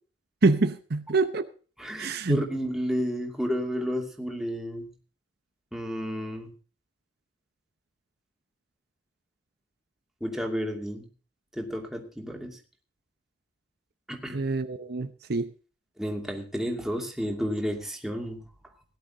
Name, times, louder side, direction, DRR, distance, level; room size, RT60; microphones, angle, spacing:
voice 1, 0.4-1.5 2.0-2.4 14.3-15.5, right 3 dB, 60° right, 0.8 m, -25 dB
voice 2, 1.8-4.9 5.7-6.5 10.2-11.1 11.6-12.6 14.1-14.4 16.0-18.4, equal, ahead, 2.5 m, -31 dB
17.5 x 11.0 x 3.9 m
head